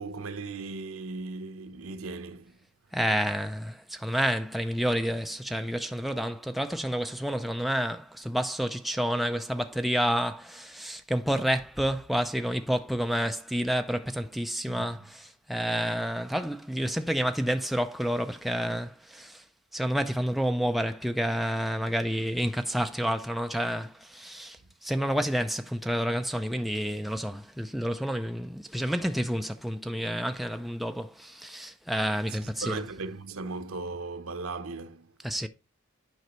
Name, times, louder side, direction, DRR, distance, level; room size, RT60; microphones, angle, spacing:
voice 1, 0.0-2.6 14.7-15.0 32.3-35.1, right 3 dB, 80° right, 0.9 m, -37 dB
voice 2, 2.9-19.4 19.7-32.8 35.2-35.5, equal, ahead, 0.3 m, -29 dB
9.3 x 5.1 x 3.1 m
head